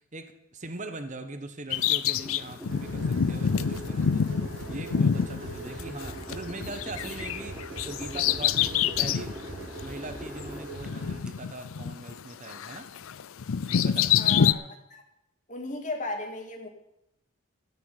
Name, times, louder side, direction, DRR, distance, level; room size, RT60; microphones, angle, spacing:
voice 1, 0.0-4.3 4.7-9.4 9.8-12.9 13.7-14.5, right 2 dB, 35° right, 8 dB, 1.2 m, -41 dB
Bird vocalization bird call bird song, 1.7-6.3 6.6-9.3 9.8-9.9 10.8-12.2 12.5-14.5, left 8 dB, 80° left, 0.5 m, -26 dB
sound 1, 1.8-11.3, equal, 5° right, 0.8 m, -45 dB
sound 2, 2.7-11.2, right 2 dB, 60° right, 2.0 m, -41 dB
voice 2, 14.2-15.0 15.5-16.7, left 2 dB, 35° left, 2 dB, 2.5 m, -36 dB
13.5 x 6.8 x 9.8 m, 0.85 s
head